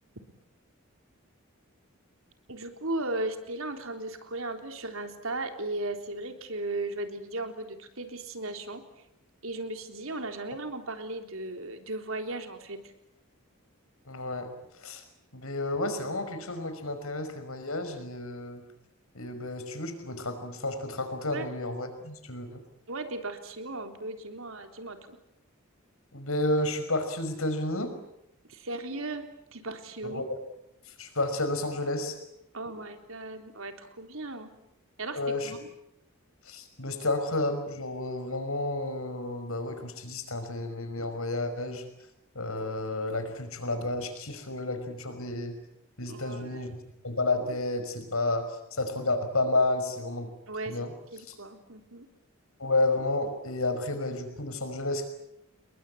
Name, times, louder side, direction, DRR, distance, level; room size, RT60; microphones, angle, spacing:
voice 1, 2.5-8.8 9.4-12.9 21.3-21.5 22.9-25.2 28.5-29.3 29.5-30.2 32.5-34.5 35.0-35.6 46.0-46.7 50.5-50.8 51.1-52.1, right 2 dB, 70° right, 6 dB, 3.7 m, -36 dB
voice 2, 14.1-14.5 14.8-15.0 15.3-18.6 19.1-22.6 26.1-27.9 30.0-30.4 31.0-32.1 35.2-35.5 36.5-41.8 42.4-45.6 46.0-46.7 47.0-48.4 48.7-50.3 50.7-50.9 51.3-51.4 52.6-55.1, left 2 dB, 80° left, 8 dB, 5.5 m, -31 dB
29.5 x 21.5 x 8.6 m, 0.80 s
head